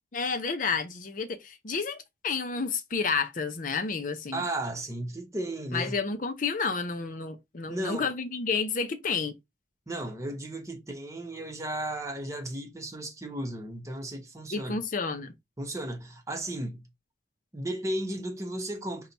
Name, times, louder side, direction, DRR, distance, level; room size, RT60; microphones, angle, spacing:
voice 1, 0.1-4.4 5.7-9.3 14.5-15.3, left 5 dB, 45° left, 0.6 m, -30 dB
voice 2, 4.3-6.0 7.7-8.1 9.9-14.8 15.6-16.8 17.5-19.1, right 1 dB, 20° right, 0.9 m, -34 dB
5.6 x 2.2 x 4.0 m
head